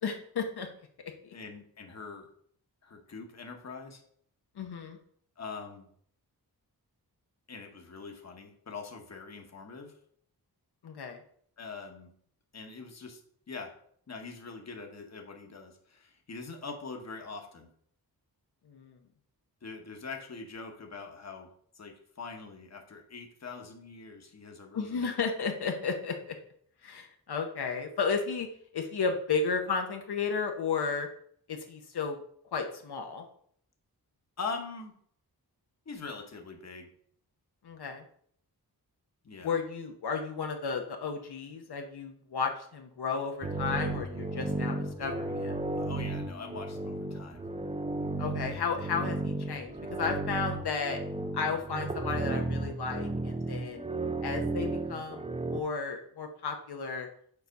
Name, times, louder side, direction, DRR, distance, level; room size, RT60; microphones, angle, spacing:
voice 1, 0.0-0.7 1.2-1.3 4.6-5.0 10.8-11.2 18.7-19.0 24.7-26.1 26.8-28.5 28.7-31.1 31.5-32.2 32.5-33.2 37.6-38.0 39.4-45.6 48.2-51.0 51.3-53.8 54.2-55.2 55.5-57.1, left 5 dB, 80° left, 3 dB, 0.9 m, -33 dB
voice 2, 1.3-2.3 2.8-4.0 5.4-5.9 7.5-9.9 11.6-12.1 12.5-13.2 13.5-13.7 14.1-17.7 19.6-25.0 34.4-34.9 35.9-36.9 39.2-39.6 45.8-47.4, left 4 dB, 45° left, 3 dB, 1.1 m, -43 dB
sound 1, 43.4-55.6, right 2 dB, 15° right, 0.4 m, -34 dB
6.9 x 4.1 x 5.2 m, 0.63 s
wide cardioid pair, 135°, 38 cm